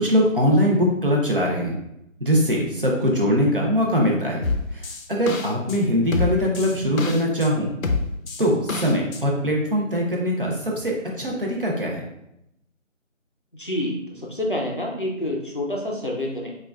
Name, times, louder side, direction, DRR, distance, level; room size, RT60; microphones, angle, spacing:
voice 1, 0.0-1.8 2.2-4.4 4.7-7.7 8.4-12.0, equal, 45° right, -2 dB, 0.8 m, -22 dB
sound 1, 4.4-5.8 6.1-7.5 7.8-9.2, left 4 dB, 80° left, 0.7 m, -27 dB
voice 2, 13.5-16.6, left 1 dB, 40° left, -2 dB, 0.6 m, -28 dB
6.3 x 2.5 x 2.3 m, 0.82 s
figure-of-eight pair, 170°, 40 cm